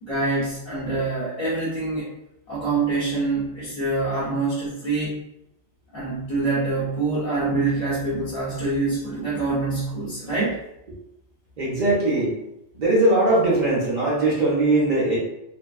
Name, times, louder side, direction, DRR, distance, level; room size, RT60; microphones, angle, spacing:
voice 1, 0.0-2.1 2.5-5.2 5.9-10.6, right 3 dB, 40° left, -10 dB, 0.8 m, -25 dB
voice 2, 11.6-12.3 12.8-15.2, right 2 dB, 45° right, -5 dB, 0.8 m, -20 dB
2.6 x 2.1 x 2.3 m, 0.84 s
omnidirectional pair, 1.2 m